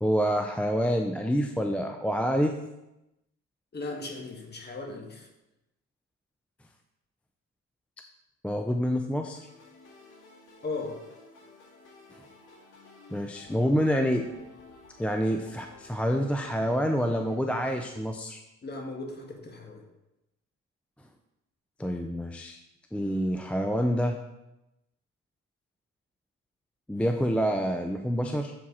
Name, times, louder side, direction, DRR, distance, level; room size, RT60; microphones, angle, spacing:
voice 1, 0.0-2.6 8.4-9.4 13.1-14.3 15.0-18.4 21.8-22.6 22.9-24.2 26.9-28.5, equal, 5° left, 4 dB, 0.4 m, -27 dB
voice 2, 3.7-5.3 10.6-11.0 18.6-19.8, left 3 dB, 35° left, 1 dB, 1.5 m, -37 dB
sound 1, 9.3-17.3, left 3 dB, 80° left, 2.1 m, -52 dB
7.3 x 4.8 x 4.2 m, 0.93 s
cardioid pair, 90°, 30 cm